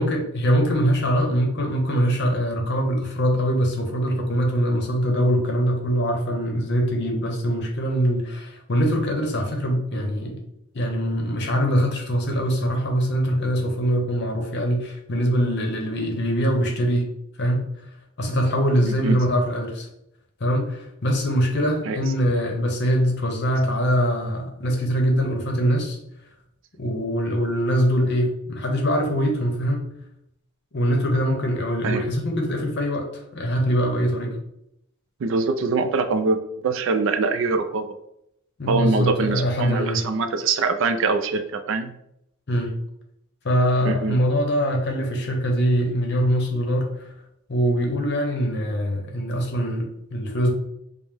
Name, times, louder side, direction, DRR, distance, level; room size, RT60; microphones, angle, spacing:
voice 1, 0.0-10.4 10.7-17.1 17.4-17.6 18.2-19.9 20.4-26.0 26.8-29.8 30.7-34.4 38.6-40.0 42.5-42.7 43.4-47.1 47.5-50.5, equal, 50° left, 2 dB, 0.8 m, -23 dB
voice 2, 18.8-19.2 21.8-22.0 31.8-32.0 35.2-37.9 38.7-41.9 43.8-44.2, right 4 dB, 60° right, 8 dB, 0.3 m, -23 dB
5.2 x 2.0 x 3.3 m, 0.78 s
head